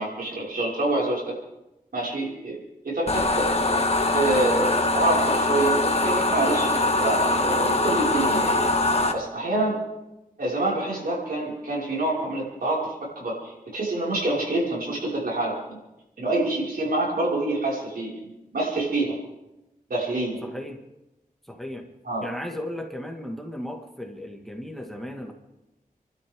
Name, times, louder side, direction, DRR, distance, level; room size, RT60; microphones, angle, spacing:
voice 1, 0.0-1.3 1.9-2.6 2.8-3.6 4.1-8.5 9.1-9.8 10.4-15.8 16.2-19.2 19.9-20.4 22.0-22.2, right 2 dB, 80° right, -4 dB, 5.8 m, -26 dB
sound 1, 3.1-9.1, left 2 dB, 45° left, 1.6 m, -22 dB
voice 2, 20.4-20.8 21.5-21.9 22.2-25.3, left 1 dB, ahead, 2 dB, 2.1 m, -35 dB
30.0 x 12.5 x 3.8 m, 0.95 s
wide cardioid pair, 90°, 15 cm